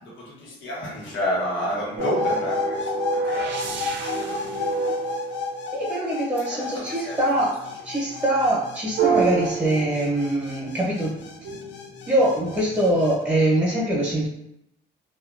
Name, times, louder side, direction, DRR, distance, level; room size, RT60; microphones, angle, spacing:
voice 1, 0.0-4.7 6.5-7.2, left 1 dB, 80° left, -6 dB, 1.1 m, -31 dB
sound 1, 2.0-13.2, left 5 dB, 65° left, 0.4 m, -33 dB
sound 2, 2.0-6.1 9.0-10.5 11.0-12.8, right 5 dB, 70° right, 0.5 m, -28 dB
voice 2, 5.7-11.2 12.1-14.3, right 1 dB, 5° right, -5 dB, 1.0 m, -23 dB
2.8 x 2.4 x 2.5 m, 0.81 s
cardioid pair, 90°, 20 cm